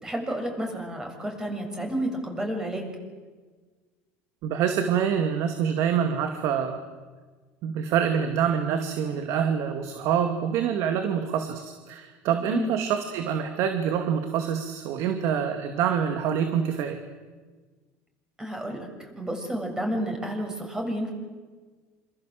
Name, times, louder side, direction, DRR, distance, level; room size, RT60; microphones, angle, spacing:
voice 1, 0.0-2.9 12.5-12.7 18.4-21.1, equal, 10° right, 3 dB, 7.0 m, -31 dB
voice 2, 4.4-6.8 7.6-17.0, right 8 dB, 60° right, 6 dB, 2.5 m, -26 dB
28.0 x 27.0 x 7.9 m, 1.4 s
cardioid pair, 135°, 6 cm